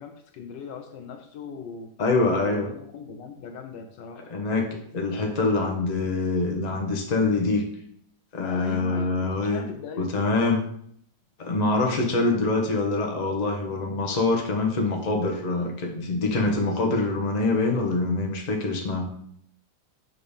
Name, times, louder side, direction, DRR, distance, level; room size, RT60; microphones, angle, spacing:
voice 1, 0.0-1.9 2.4-4.3 8.4-10.1, left 5 dB, 70° left, 6 dB, 1.2 m, -39 dB
voice 2, 2.0-2.7 4.3-7.6 8.3-9.6 10.0-10.6 11.4-19.1, left 3 dB, 30° left, 1 dB, 0.9 m, -25 dB
6.6 x 4.2 x 5.2 m, 0.68 s
omnidirectional pair, 2.1 m